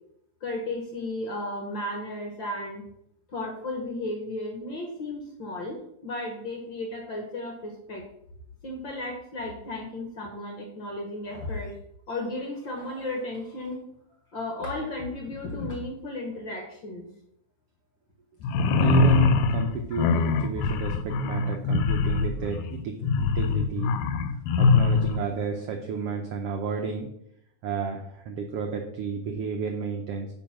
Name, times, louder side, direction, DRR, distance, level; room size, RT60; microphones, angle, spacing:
voice 1, 0.4-2.8 3.3-8.1 8.6-11.8 12.1-13.8 14.3-17.1, left 2 dB, 55° left, 1 dB, 1.4 m, -34 dB
sound 1, 18.4-25.2, left 4 dB, 80° left, 1.9 m, -23 dB
voice 2, 18.8-23.9 24.6-27.1 27.6-30.3, right 5 dB, 80° right, 4 dB, 1.3 m, -32 dB
9.2 x 4.4 x 5.9 m, 0.77 s
omnidirectional pair, 3.6 m